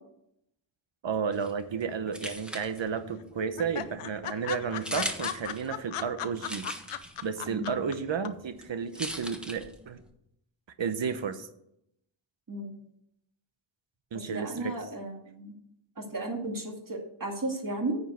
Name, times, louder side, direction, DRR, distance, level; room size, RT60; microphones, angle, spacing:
voice 1, 1.0-6.7 7.2-10.0 10.8-11.5 14.1-14.7, right 6 dB, 60° right, 10 dB, 0.9 m, -32 dB
sound 1, 1.3-10.1, equal, ahead, 1.2 m, -42 dB
sound 2, 1.9-2.5 2.8-2.9 3.2-3.3 3.6-7.9 8.2-8.3, left 10 dB, 90° left, 0.7 m, -36 dB
voice 2, 14.3-15.5 16.0-18.0, right 2 dB, 40° right, 1 dB, 2.4 m, -34 dB
9.6 x 5.3 x 7.9 m, 0.77 s
wide cardioid pair, 90°, 50 cm